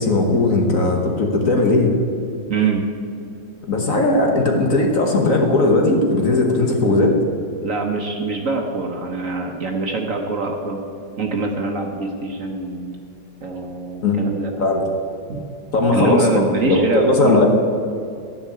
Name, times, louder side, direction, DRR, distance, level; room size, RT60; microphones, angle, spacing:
voice 1, 0.0-1.9 3.7-7.1 14.0-14.8 15.7-17.5, left 2 dB, 50° left, 2 dB, 1.6 m, -18 dB
voice 2, 2.5-2.9 7.6-10.8 11.2-13.0 13.4-14.6 15.3-15.5 15.9-17.5, right 4 dB, 50° right, 2 dB, 1.3 m, -24 dB
13.5 x 5.7 x 8.5 m, 2.4 s
omnidirectional pair, 2.0 m